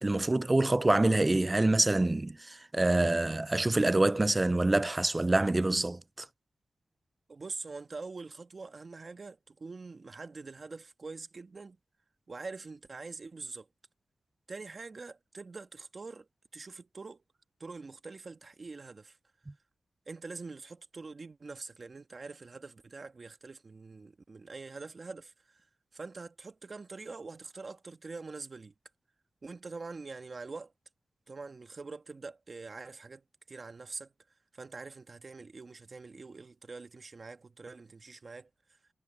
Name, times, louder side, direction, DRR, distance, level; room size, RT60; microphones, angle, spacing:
voice 1, 0.0-6.3, right 2 dB, 25° right, 0.3 m, -26 dB
voice 2, 7.3-11.8 12.3-13.7 14.5-17.2 17.6-19.2 20.1-25.7 25.9-28.7 29.4-30.7 31.3-34.1 34.5-38.8, right 3 dB, 50° right, 1.6 m, -44 dB
cardioid pair, 60°, 0 cm